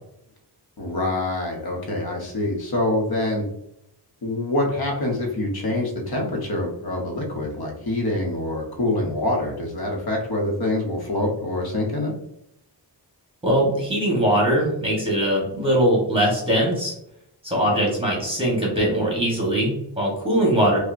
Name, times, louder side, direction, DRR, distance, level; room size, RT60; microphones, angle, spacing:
voice 1, 0.8-3.4 4.2-12.1, left 1 dB, 55° left, 0 dB, 0.9 m, -25 dB
voice 2, 13.4-16.9 17.4-20.8, right 1 dB, 10° right, -3 dB, 1.1 m, -21 dB
5.3 x 2.2 x 2.5 m, 0.78 s
wide cardioid pair, 180°, 43 cm